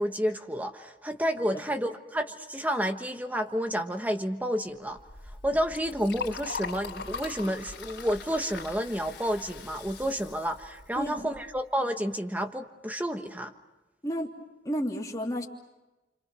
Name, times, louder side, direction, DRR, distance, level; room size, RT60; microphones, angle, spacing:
voice 1, 0.0-5.0 5.4-13.5, equal, 10° right, 6 dB, 1.4 m, -30 dB
Liquid, 4.9-11.6, left 4 dB, 85° left, 3.2 m, -41 dB
voice 2, 11.0-11.3 14.0-14.3 14.6-15.4, equal, 20° left, 0 dB, 3.0 m, -31 dB
30.0 x 26.5 x 6.2 m, 1.0 s
head